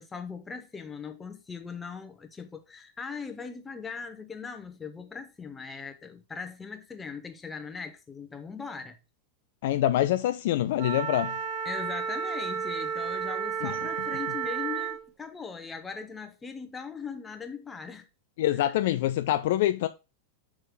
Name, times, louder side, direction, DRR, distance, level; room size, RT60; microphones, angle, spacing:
voice 1, 0.0-9.0 11.6-18.1 18.6-18.7, left 5 dB, 15° left, 1.1 m, -40 dB
voice 2, 9.6-11.4 13.6-13.8 18.4-19.9, left 13 dB, 55° left, 0.4 m, -25 dB
Wind instrument woodwind instrument, 10.8-15.1, right 7 dB, 35° right, 1.0 m, -32 dB
6.2 x 4.9 x 4.9 m
figure-of-eight pair, 90°, 0 cm